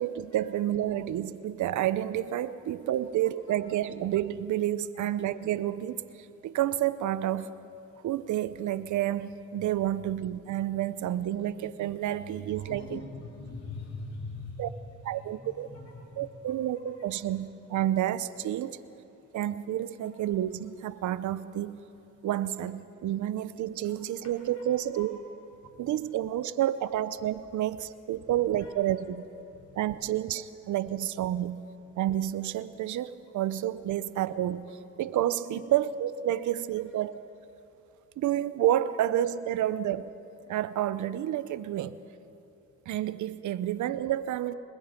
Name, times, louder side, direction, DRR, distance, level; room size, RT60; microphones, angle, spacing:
voice 1, 0.0-6.0 6.4-7.5 8.0-13.0 14.6-14.7 15.0-15.7 16.2-18.8 19.3-21.8 22.2-25.2 25.8-29.2 29.8-31.6 32.0-34.7 35.0-37.2 38.2-40.1 40.5-42.0 42.9-44.5, right 12 dB, 75° right, 15 dB, 0.9 m, -30 dB
voice 2, 12.5-14.7 15.0-16.3 23.8-23.9 24.5-24.6 24.9-25.1 28.4-28.7 29.5-29.8 35.5-35.6, left 3 dB, 55° left, -3 dB, 3.6 m, -42 dB
26.5 x 21.0 x 5.2 m, 2.8 s
cardioid pair, 90°, 30 cm